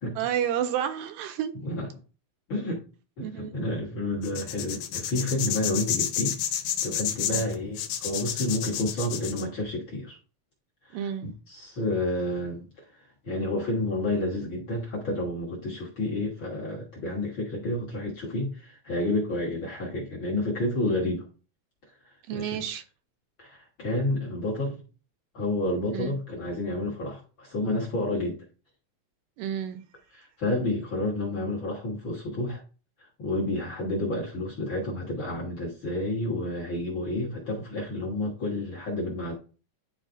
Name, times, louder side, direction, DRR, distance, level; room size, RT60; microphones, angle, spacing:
voice 1, 0.2-1.5 3.2-3.5 7.3-7.4 10.9-11.3 22.3-22.8 25.9-26.2 29.4-29.8, right 9 dB, 80° right, 2.1 m, -30 dB
voice 2, 2.5-2.8 3.2-6.3 6.8-10.2 10.8-11.0 11.5-12.6 13.2-21.2 22.3-22.6 23.4-24.8 25.3-28.4 30.1-32.6 33.2-39.3, left 1 dB, 55° left, 1.4 m, -30 dB
sound 1, 4.2-9.4, left 10 dB, 80° left, 2.4 m, -30 dB
11.0 x 4.0 x 2.6 m
omnidirectional pair, 4.0 m